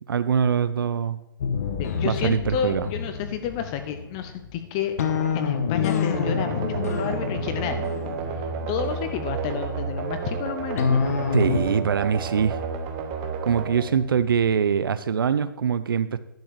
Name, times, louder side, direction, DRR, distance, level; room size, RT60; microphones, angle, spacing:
voice 1, 0.1-1.2 2.0-2.9 11.3-12.6 13.4-16.2, right 7 dB, 85° right, 13 dB, 0.6 m, -23 dB
sound 1, 1.4-9.7 10.8-11.6, left 6 dB, 45° left, 1.2 m, -27 dB
voice 2, 1.8-4.9 5.3-7.9 8.7-11.0, left 8 dB, 15° left, 9 dB, 0.3 m, -30 dB
sound 2, 6.1-14.8, right 5 dB, 20° right, 0.8 m, -31 dB
10.5 x 5.4 x 6.7 m, 0.86 s
hypercardioid pair, 170°, 11 cm